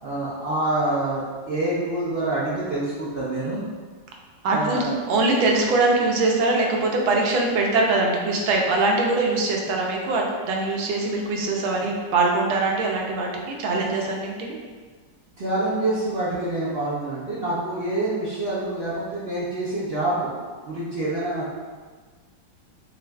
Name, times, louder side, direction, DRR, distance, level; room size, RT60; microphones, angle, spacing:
voice 1, 0.0-3.6 4.5-4.9 15.4-20.3 20.6-21.6, right 2 dB, 65° right, -9 dB, 0.6 m, -26 dB
voice 2, 4.4-14.6, right 3 dB, 85° right, 0 dB, 1.5 m, -22 dB
6.2 x 2.5 x 2.2 m, 1.5 s
omnidirectional pair, 2.1 m